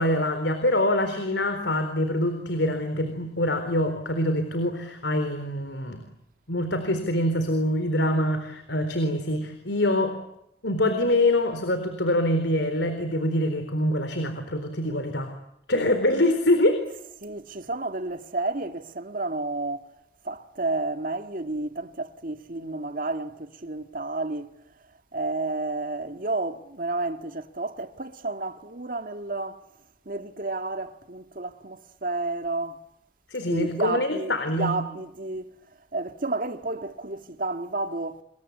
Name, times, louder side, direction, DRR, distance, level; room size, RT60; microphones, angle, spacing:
voice 1, 0.0-6.1 6.5-10.2 10.6-15.3 15.7-16.8 33.3-34.8, left 1 dB, 90° left, 4.1 m, -25 dB
voice 2, 17.2-19.9 20.3-24.5 25.1-29.6 30.1-32.8 33.5-35.5 35.9-38.2, right 2 dB, 50° right, 1.9 m, -31 dB
29.5 x 23.0 x 8.4 m
head